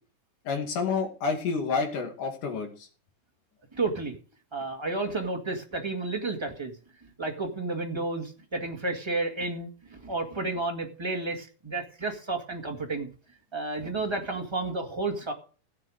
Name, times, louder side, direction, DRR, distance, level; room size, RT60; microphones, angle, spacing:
voice 1, 0.5-2.7, left 5 dB, 70° left, 4 dB, 3.8 m, -29 dB
voice 2, 3.7-4.1 4.5-6.7 7.2-13.1 13.5-15.3, right 3 dB, 15° right, 2 dB, 1.2 m, -31 dB
16.5 x 7.6 x 5.0 m, 0.38 s
omnidirectional pair, 3.8 m